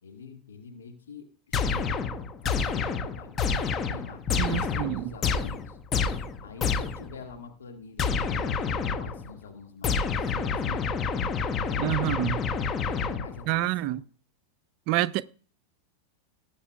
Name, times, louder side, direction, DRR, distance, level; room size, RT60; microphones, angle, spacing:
voice 1, 0.0-2.1 2.4-5.8 6.4-10.9 11.6-12.2 12.8-14.0, left 5 dB, 65° left, 1.9 m, -46 dB
sound 1, 1.5-7.2 8.0-9.3 9.8-13.5, left 5 dB, 25° left, 1.0 m, -28 dB
voice 2, 4.4-5.1 11.8-12.4 13.5-14.0 14.9-15.2, right 16 dB, 45° right, 0.5 m, -27 dB
19.5 x 8.0 x 2.3 m
figure-of-eight pair, 90°, 0 cm